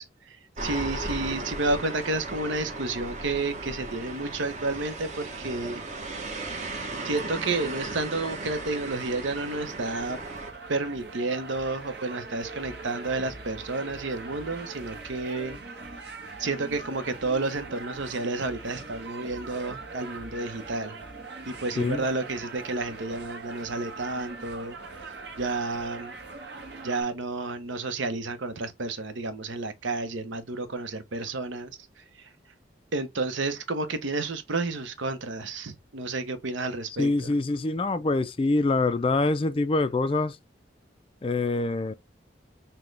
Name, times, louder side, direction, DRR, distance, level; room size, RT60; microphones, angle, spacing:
voice 1, 0.0-5.8 6.5-6.7 7.0-10.2 10.7-15.6 16.4-20.9 21.5-24.8 25.4-26.1 26.8-31.8 32.9-37.3, right 3 dB, 80° right, 0.8 m, -31 dB
sound 1, 0.6-10.5, right 2 dB, 40° right, 0.9 m, -36 dB
sound 2, 7.9-27.0, right 3 dB, 60° right, 1.0 m, -42 dB
voice 2, 21.8-22.1 37.0-40.4 41.2-41.9, left 3 dB, 30° left, 0.3 m, -25 dB
5.9 x 2.2 x 3.2 m
head